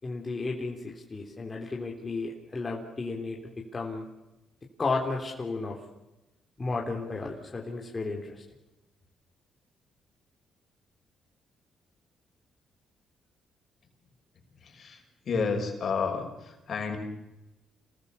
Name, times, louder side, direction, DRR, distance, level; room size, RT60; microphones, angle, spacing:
voice 1, 0.0-4.1 4.8-5.8 6.6-8.4, left 3 dB, 30° left, 0 dB, 3.6 m, -33 dB
voice 2, 14.6-17.0, left 5 dB, 55° left, 4 dB, 5.6 m, -31 dB
28.5 x 20.0 x 7.0 m, 1.0 s
cardioid pair, 90°, 0 cm